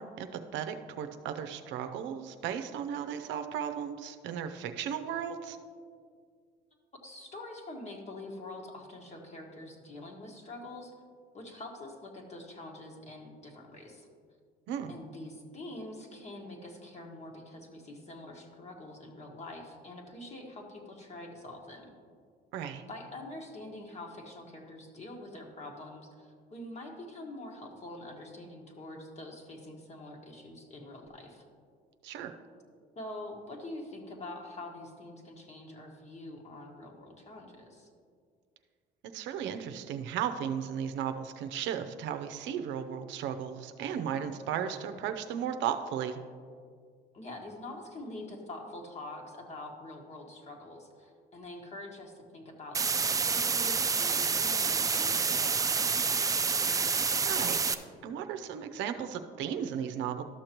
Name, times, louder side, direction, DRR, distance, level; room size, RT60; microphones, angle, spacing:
voice 1, 0.0-5.6 14.7-15.0 22.5-22.8 32.0-32.3 39.1-46.2 57.2-57.6 58.0-60.2, right 8 dB, 75° right, 8 dB, 0.6 m, -35 dB
voice 2, 7.0-10.9 11.3-14.1 14.9-21.9 22.9-31.4 32.9-37.9 47.1-56.3, left 1 dB, 35° left, 1 dB, 1.6 m, -45 dB
sound 1, 52.7-57.7, right 5 dB, 20° right, 0.4 m, -28 dB
12.5 x 6.5 x 3.0 m, 2.1 s
cardioid pair, 95°, 19 cm